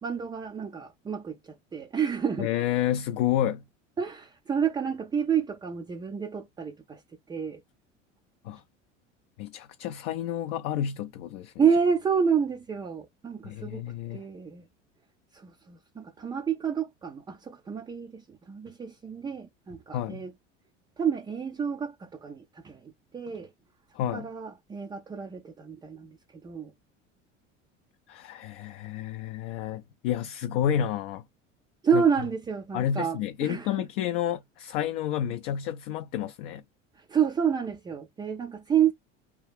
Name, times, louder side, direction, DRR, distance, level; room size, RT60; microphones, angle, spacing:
voice 1, 0.0-2.5 4.0-7.0 7.3-7.6 11.6-13.9 14.1-14.7 15.3-20.3 21.0-23.5 24.1-26.2 26.4-26.7 31.8-33.9 36.9-38.9, right 7 dB, 10° right, 0.3 m, -29 dB
voice 2, 2.4-3.6 8.4-8.6 9.4-11.5 13.4-14.3 19.9-20.2 23.9-24.3 28.1-31.2 31.9-32.0 32.7-36.6, left 10 dB, 50° left, 0.4 m, -30 dB
2.9 x 2.2 x 3.4 m
figure-of-eight pair, 70°, 38 cm